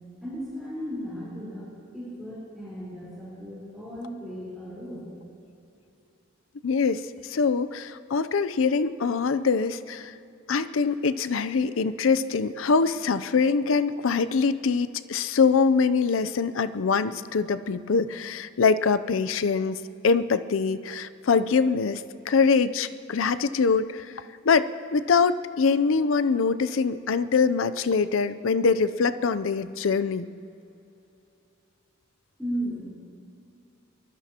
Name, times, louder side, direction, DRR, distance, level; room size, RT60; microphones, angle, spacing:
voice 1, 0.2-1.7 1.9-5.1 32.4-32.9, equal, ahead, -11 dB, 4.0 m, -35 dB
voice 2, 6.6-10.1 10.5-24.1 24.4-30.3, left 5 dB, 80° left, 13 dB, 0.5 m, -24 dB
23.5 x 19.5 x 2.9 m, 2.7 s
head